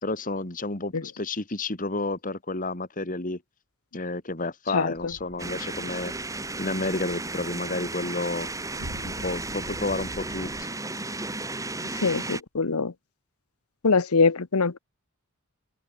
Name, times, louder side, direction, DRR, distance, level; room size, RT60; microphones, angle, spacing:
voice 1, 0.0-3.4 3.9-6.1 6.6-8.5 9.0-10.7, left 2 dB, 35° left, 2.1 m, -31 dB
voice 2, 4.7-5.1 11.9-12.9 13.8-14.8, left 4 dB, 85° left, 1.0 m, -23 dB
sound 1, 5.0-10.6, equal, 85° right, 7.0 m, -45 dB
sound 2, 5.4-12.4, right 2 dB, 15° right, 5.0 m, -34 dB
open air
head